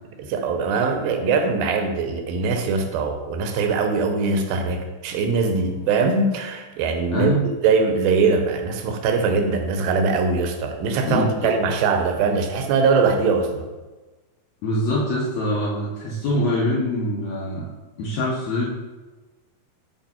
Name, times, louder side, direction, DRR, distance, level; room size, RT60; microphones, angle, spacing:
voice 1, 0.2-7.3 7.6-13.7, right 4 dB, 85° right, 5 dB, 2.5 m, -22 dB
voice 2, 11.1-11.5 14.6-17.7 18.0-18.7, left 1 dB, 75° left, -4 dB, 1.7 m, -24 dB
8.1 x 3.3 x 4.2 m, 1.2 s
omnidirectional pair, 4.1 m